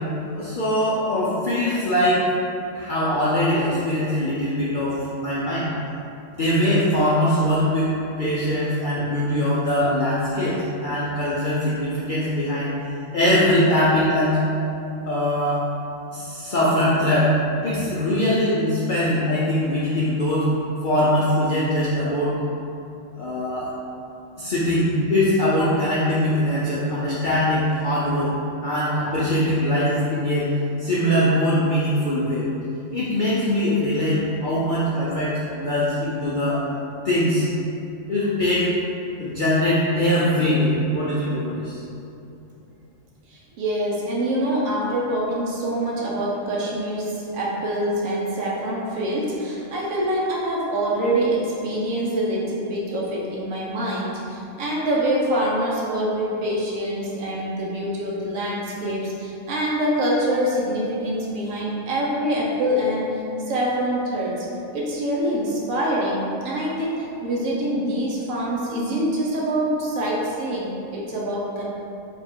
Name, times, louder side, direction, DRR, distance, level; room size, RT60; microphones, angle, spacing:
voice 1, 0.3-2.2 2.7-5.7 6.3-7.9 8.2-12.7 13.1-14.4 15.1-15.6 16.1-17.3 17.6-20.5 20.8-22.3 23.2-23.7 24.4-28.3 28.6-30.5 30.8-32.5 32.9-36.6 37.0-37.5 38.1-38.7 39.2-41.8, left 1 dB, 60° left, -8 dB, 0.5 m, -22 dB
voice 2, 43.3-63.1 63.5-64.5 64.7-71.6, right 1 dB, 90° right, -5 dB, 1.1 m, -25 dB
3.5 x 2.4 x 4.2 m, 2.7 s
omnidirectional pair, 1.4 m